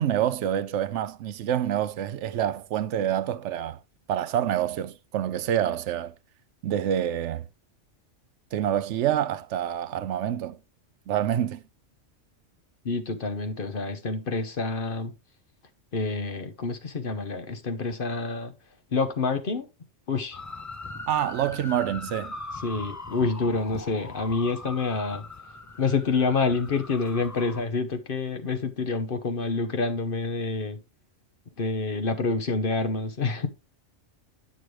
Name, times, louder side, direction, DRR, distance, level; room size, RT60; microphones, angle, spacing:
voice 1, 0.0-3.8 4.1-6.1 6.6-7.5 8.5-10.6 11.1-11.6 21.1-22.4, right 10 dB, 75° right, 0.9 m, -27 dB
voice 2, 12.8-15.1 15.9-18.5 18.9-19.7 20.1-20.4 22.6-25.2 25.8-30.8 31.6-33.5, left 4 dB, 50° left, 1.0 m, -27 dB
sound 1, 20.3-27.6, left 3 dB, 30° left, 0.3 m, -40 dB
9.1 x 6.2 x 3.2 m
omnidirectional pair, 1.3 m